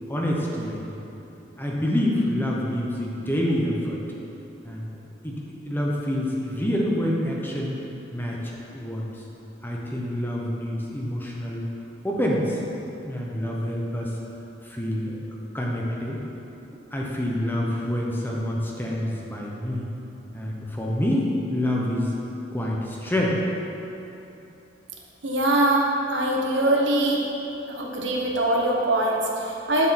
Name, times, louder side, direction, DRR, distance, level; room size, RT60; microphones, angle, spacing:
voice 1, 0.1-1.0 1.6-4.0 4.6-5.0 5.2-5.3 5.6-7.8 8.1-9.1 9.6-11.6 12.0-12.6 13.0-14.1 14.6-15.2 15.5-16.2 16.9-19.9 20.3-21.2 21.5-22.1 22.5-23.4, left 1 dB, 10° left, -3 dB, 0.9 m, -27 dB
voice 2, 25.2-27.2 27.7-29.9, right 1 dB, 85° right, -1 dB, 1.2 m, -23 dB
8.2 x 7.2 x 4.3 m, 3.0 s
head